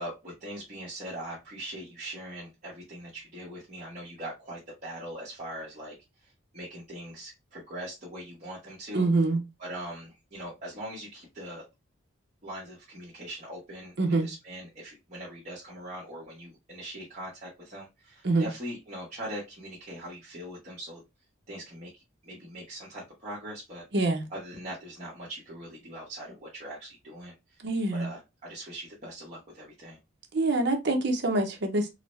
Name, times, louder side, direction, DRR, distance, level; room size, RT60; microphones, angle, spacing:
voice 1, 0.0-5.9 6.2-9.0 9.6-11.6 12.4-13.9 14.2-21.0 21.5-23.8 24.3-27.6 27.9-30.0, right 1 dB, 35° right, 1.0 m, -41 dB
voice 2, 8.9-9.4 14.0-14.3 18.2-18.5 23.9-24.2 27.6-28.1 30.3-31.9, right 2 dB, 55° right, 0.7 m, -25 dB
3.8 x 2.0 x 3.0 m
head